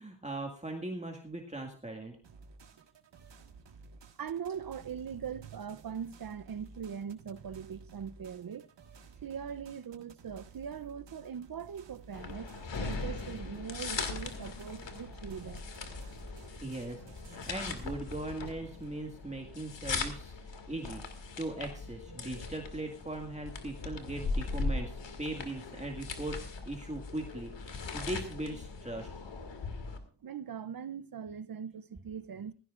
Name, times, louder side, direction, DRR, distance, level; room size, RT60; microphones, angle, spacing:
voice 1, 0.0-2.1 16.6-20.3 20.7-21.0 21.4-26.4 26.7-29.1, right 2 dB, 15° right, 1.9 m, -39 dB
sound 1, 2.2-18.9, right 4 dB, 80° right, 1.7 m, -55 dB
voice 2, 4.2-8.7 9.2-15.7 22.1-22.2 30.2-32.5, right 7 dB, 55° right, 0.6 m, -41 dB
sound 2, 12.1-30.0, left 4 dB, 85° left, 2.2 m, -39 dB
17.5 x 15.5 x 2.5 m
cardioid pair, 75°, 43 cm